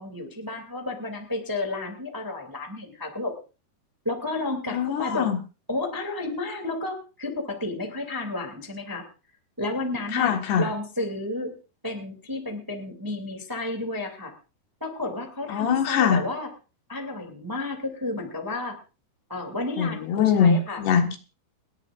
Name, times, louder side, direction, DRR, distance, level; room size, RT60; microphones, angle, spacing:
voice 1, 0.0-3.3 4.0-5.2 5.7-9.0 9.6-11.5 11.8-14.3 14.8-16.5 16.9-18.8 19.3-20.8, left 2 dB, 10° right, 3 dB, 1.5 m, -32 dB
voice 2, 4.7-5.4 10.1-10.7 15.5-16.3 19.8-21.2, left 7 dB, 80° left, 5 dB, 3.7 m, -22 dB
30.0 x 11.0 x 2.5 m, 0.33 s
omnidirectional pair, 4.6 m